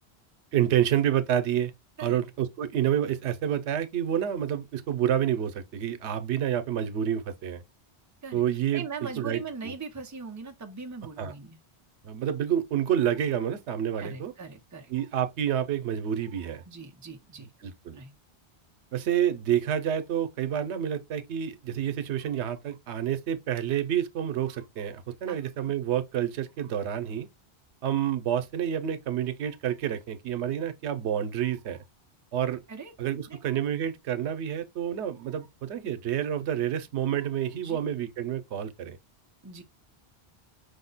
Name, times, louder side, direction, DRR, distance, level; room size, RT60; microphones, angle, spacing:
voice 1, 0.5-1.7 2.0-7.6 8.3-8.8 9.2-9.7 11.2-11.3 12.0-14.3 14.9-16.6 17.6-18.0 18.9-27.3 27.8-31.8 32.3-32.6 33.0-39.0, right 10 dB, 90° right, 0.9 m, -28 dB
voice 2, 8.7-11.6 14.0-14.9 16.7-17.5 17.9-18.1 25.3-25.4 32.7-32.9 33.3-33.4 37.6-37.8 39.4-39.6, right 5 dB, 20° right, 0.6 m, -40 dB
5.2 x 2.1 x 3.9 m
omnidirectional pair, 1.1 m